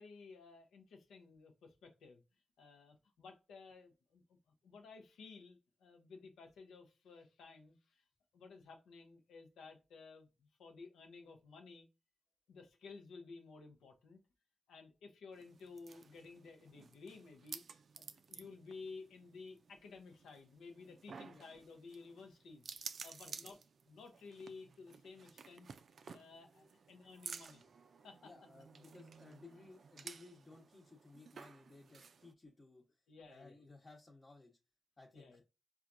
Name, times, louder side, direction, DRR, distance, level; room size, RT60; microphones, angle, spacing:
voice 1, 0.0-2.2 2.6-4.4 4.6-8.0 8.3-11.9 12.5-14.2 14.7-17.6 18.0-22.7 23.0-23.6 23.8-25.7 26.1-27.6 28.0-28.3 33.1-33.6 35.1-35.4, left 4 dB, 90° left, 0.6 m, -55 dB
sound 1, 15.3-32.3, right 5 dB, 70° right, 0.3 m, -54 dB
voice 2, 23.2-23.5 28.2-32.9 33.3-34.6 35.0-35.4, left 3 dB, 35° left, 0.9 m, -58 dB
4.4 x 2.3 x 2.5 m
supercardioid pair, 50°, 0 cm